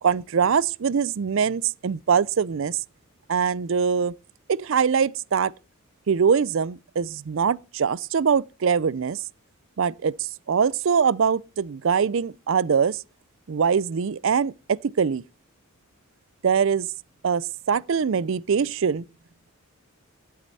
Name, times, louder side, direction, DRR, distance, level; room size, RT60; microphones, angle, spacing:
voice 1, 0.0-2.8 3.3-4.1 4.5-5.5 6.1-9.2 9.8-13.0 13.5-15.2 16.4-16.9 17.2-19.0, right 6 dB, 60° right, 0.4 m, -23 dB
11.5 x 8.6 x 4.1 m
head